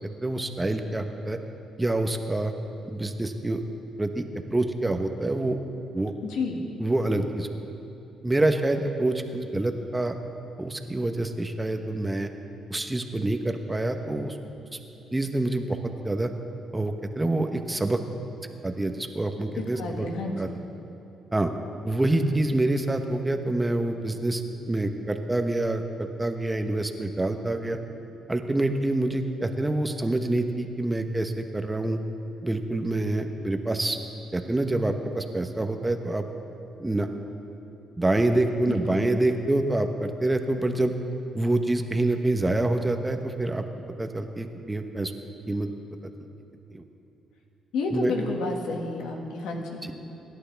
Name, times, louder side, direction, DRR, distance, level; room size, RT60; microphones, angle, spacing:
voice 1, 0.2-1.4 1.8-2.5 2.9-3.6 4.0-4.2 4.5-5.6 5.9-6.1 6.8-7.5 8.2-10.2 10.6-12.3 12.7-14.4 15.1-16.3 16.7-18.0 18.6-20.1 20.4-20.5 21.3-21.5 21.8-27.8 28.3-32.0 32.4-34.0 34.3-36.2 36.8-37.1 38.0-40.9 41.3-43.6 44.0-45.1 45.5-45.7 46.7-46.8 47.9-48.1 49.8-49.9, right 2 dB, 15° right, 6 dB, 1.0 m, -26 dB
voice 2, 6.3-6.6 19.8-20.6 38.6-39.1 47.7-49.9, left 3 dB, 85° left, 1 dB, 1.8 m, -31 dB
25.5 x 11.5 x 3.4 m, 2.9 s
cardioid pair, 90°, 0 cm